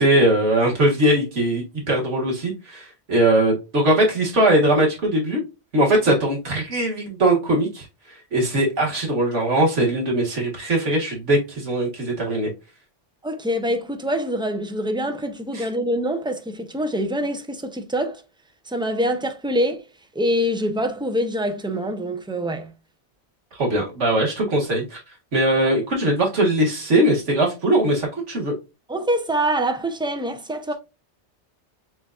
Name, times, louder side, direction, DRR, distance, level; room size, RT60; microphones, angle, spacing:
voice 1, 0.0-5.4 5.7-12.5 15.5-15.7 23.6-25.0 25.3-28.5, right 1 dB, 80° right, 2.0 m, -20 dB
voice 2, 13.2-18.2 18.7-19.8 20.2-22.7 28.9-30.7, equal, 10° right, 0.3 m, -25 dB
7.5 x 2.6 x 2.3 m
omnidirectional pair, 1.2 m